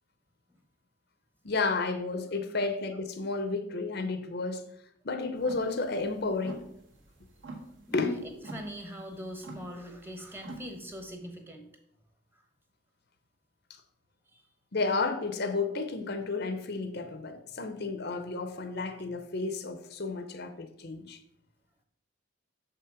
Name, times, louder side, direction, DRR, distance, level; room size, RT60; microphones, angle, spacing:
voice 1, 1.4-4.7 5.0-6.7 7.9-8.1 13.7-13.8 14.7-21.2, left 3 dB, 50° left, 0.6 m, -32 dB
sound 1, 5.4-11.1, right 2 dB, 65° right, 1.5 m, -46 dB
voice 2, 7.9-8.2 8.4-11.6 12.3-12.4 14.3-14.4, equal, 10° right, 1.0 m, -42 dB
6.9 x 5.7 x 4.8 m
head